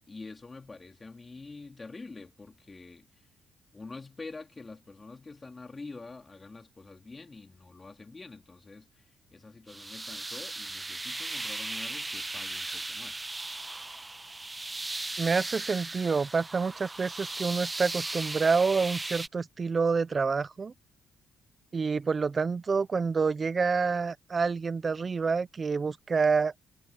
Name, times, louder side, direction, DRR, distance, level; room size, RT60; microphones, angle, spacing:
voice 1, 0.1-3.1 3.7-8.9 9.3-13.3, left 3 dB, 25° left, 3.4 m, -46 dB
sound 1, 9.7-19.3, right 2 dB, 20° right, 1.0 m, -37 dB
voice 2, 15.2-20.7 21.7-26.5, right 5 dB, 35° right, 0.7 m, -27 dB
cardioid pair, 90°, 0 cm